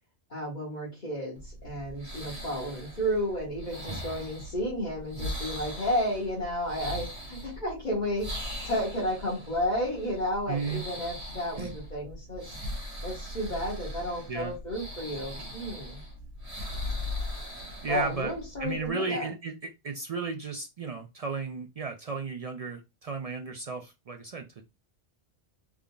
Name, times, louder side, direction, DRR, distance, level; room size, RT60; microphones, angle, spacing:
voice 1, 0.3-8.3 8.6-12.6 13.0-16.0 17.9-19.3, equal, 40° left, -6 dB, 1.4 m, -32 dB
sound 1, 1.3-18.9, left 1 dB, 35° right, 1.2 m, -39 dB
voice 2, 10.5-10.8 11.6-11.7 14.3-14.5 17.8-18.3 18.6-24.6, right 4 dB, 75° right, 5 dB, 0.3 m, -34 dB
3.7 x 3.5 x 2.2 m, 0.24 s
omnidirectional pair, 1.2 m